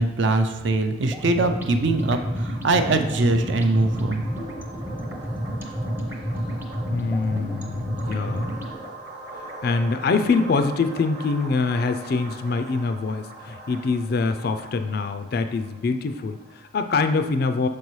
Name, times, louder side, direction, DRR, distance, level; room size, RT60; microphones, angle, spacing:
voice 1, 0.0-4.3, right 2 dB, 60° right, 7 dB, 0.5 m, -22 dB
sound 1, 1.0-16.7, right 2 dB, 35° right, 0.9 m, -42 dB
sound 2, 1.1-8.7, equal, 10° right, 0.6 m, -30 dB
voice 2, 6.9-8.6 9.3-17.7, left 4 dB, 50° left, 8 dB, 0.3 m, -24 dB
6.5 x 5.3 x 3.1 m, 1.1 s
head